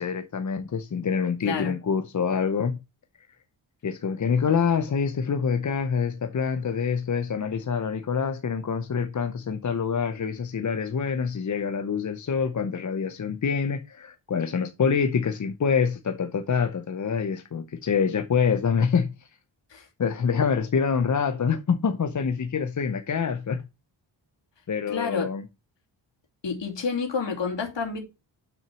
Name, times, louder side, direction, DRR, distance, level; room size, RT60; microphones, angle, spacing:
voice 1, 0.0-2.8 3.8-19.1 20.0-23.7 24.7-25.5, left 6 dB, 40° left, 0.7 m, -26 dB
voice 2, 1.4-1.7 19.7-19.9 24.9-25.3 26.4-28.0, left 5 dB, 65° left, 2.8 m, -29 dB
6.0 x 6.0 x 6.1 m
wide cardioid pair, 140°, 47 cm